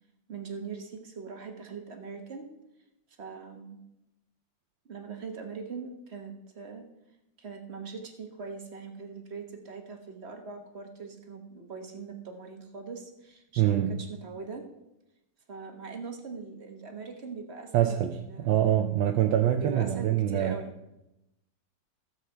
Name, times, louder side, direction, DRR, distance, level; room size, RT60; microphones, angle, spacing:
voice 1, 0.3-2.5 3.2-3.8 4.8-6.8 7.4-14.7 15.5-18.8 19.6-20.7, right 5 dB, 40° right, 5 dB, 1.3 m, -41 dB
voice 2, 13.6-14.0 17.7-20.6, right 11 dB, 85° right, 5 dB, 1.4 m, -25 dB
14.0 x 7.5 x 4.5 m, 0.90 s
omnidirectional pair, 2.0 m